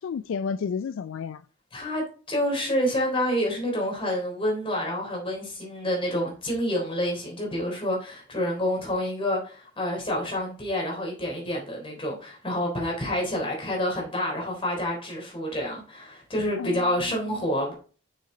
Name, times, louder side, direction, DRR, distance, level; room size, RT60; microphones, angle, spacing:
voice 1, 0.0-1.4 16.6-17.5, left 6 dB, 65° left, 0.3 m, -32 dB
voice 2, 1.7-17.7, left 1 dB, 25° left, 3.5 m, -28 dB
6.6 x 6.5 x 3.9 m
head